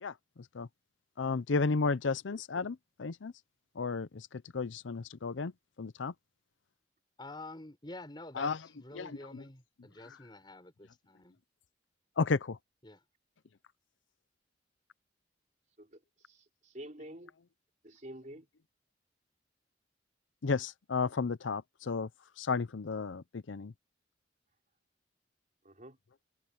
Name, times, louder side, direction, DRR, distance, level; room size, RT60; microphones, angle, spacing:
voice 1, 1.2-3.3 3.8-4.3 4.5-5.5 5.8-6.1 8.3-8.6 8.9-9.4 12.2-12.6 20.4-22.1 22.4-23.7, left 4 dB, 85° left, 0.6 m, -33 dB
voice 2, 7.2-11.4 12.8-13.0, left 2 dB, 25° left, 5.0 m, -48 dB
voice 3, 16.3-17.3 17.8-18.5 25.6-26.0, right 1 dB, 40° right, 4.0 m, -48 dB
head